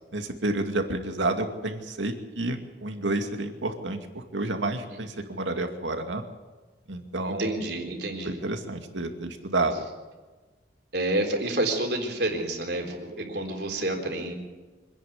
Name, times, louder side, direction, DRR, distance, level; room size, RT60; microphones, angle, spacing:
voice 1, 0.1-6.2 6.9-7.6 8.2-9.8, right 2 dB, 90° right, 5 dB, 2.4 m, -30 dB
voice 2, 4.9-5.2 7.2-8.4 10.9-14.3, right 1 dB, 60° right, 2 dB, 4.0 m, -29 dB
25.5 x 10.5 x 9.6 m, 1.3 s
head